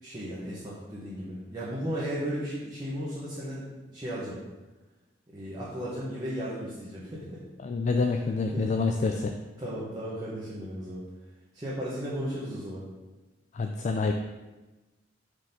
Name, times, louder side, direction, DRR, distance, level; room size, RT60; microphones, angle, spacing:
voice 1, 0.0-3.6 3.9-4.4 5.3-7.4 8.5-8.7 9.0-9.2 9.6-11.0 11.5-12.8, equal, 20° right, -8 dB, 1.1 m, -35 dB
voice 2, 7.6-9.3 13.5-14.1, left 4 dB, 40° left, 4 dB, 0.3 m, -27 dB
4.9 x 3.8 x 5.5 m, 1.1 s
head